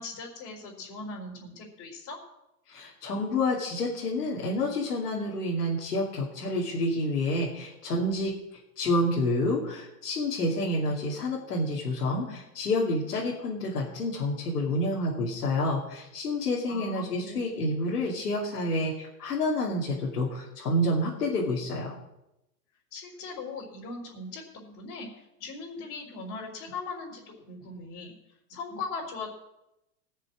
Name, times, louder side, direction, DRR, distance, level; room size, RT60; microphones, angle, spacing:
voice 1, 0.0-2.2 16.7-17.6 22.9-28.1 28.5-29.4, left 3 dB, 40° left, -4 dB, 4.3 m, -39 dB
voice 2, 2.7-22.0, left 1 dB, 85° left, -4 dB, 2.8 m, -29 dB
19.0 x 6.7 x 6.3 m, 0.90 s
hypercardioid pair, 115°, 45 cm